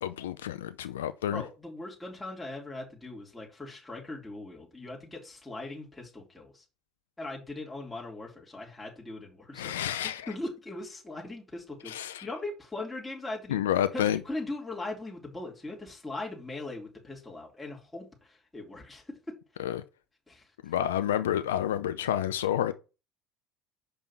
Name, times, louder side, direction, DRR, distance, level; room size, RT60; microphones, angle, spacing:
voice 1, 0.0-1.4 9.5-10.3 11.8-12.3 13.5-14.2 19.6-19.8 20.6-22.7, left 11 dB, 90° left, 0.5 m, -29 dB
voice 2, 1.3-6.6 7.2-9.8 10.0-11.9 12.2-13.6 13.9-19.0 20.3-20.4, left 2 dB, 10° left, 3.4 m, -40 dB
6.9 x 5.4 x 5.8 m
hypercardioid pair, 75°, 0 cm